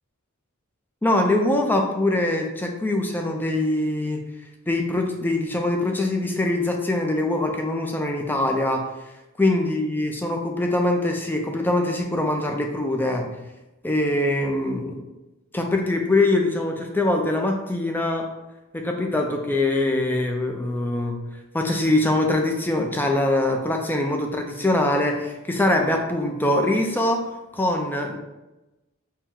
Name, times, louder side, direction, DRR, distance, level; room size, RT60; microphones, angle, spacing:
voice 1, 1.0-4.2 4.7-8.8 9.4-13.3 13.8-15.0 15.5-18.2 18.7-21.2 21.5-27.2 27.5-28.2, left 1 dB, 10° left, 2 dB, 0.4 m, -23 dB
4.4 x 2.1 x 3.6 m, 1.0 s
head